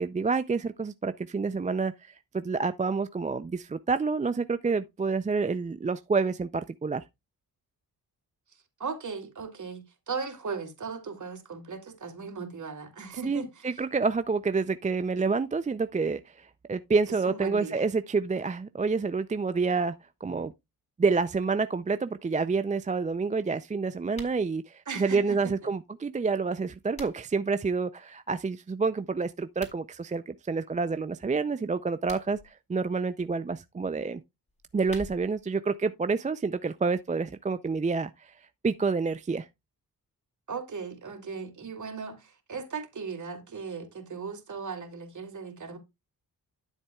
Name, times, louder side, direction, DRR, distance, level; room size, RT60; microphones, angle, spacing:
voice 1, 0.0-7.0 13.2-19.9 20.2-20.5 21.0-34.2 34.7-38.3 38.6-39.5, right 4 dB, 20° right, 0.4 m, -28 dB
voice 2, 8.8-13.7 17.2-17.8 24.9-25.7 40.5-45.8, right 5 dB, 50° right, 2.8 m, -37 dB
sound 1, 24.1-24.4 26.5-27.4 29.4-29.8 31.8-32.5 34.5-35.5, left 1 dB, 20° left, 3.8 m, -47 dB
12.0 x 7.3 x 2.3 m
cardioid pair, 80°, 37 cm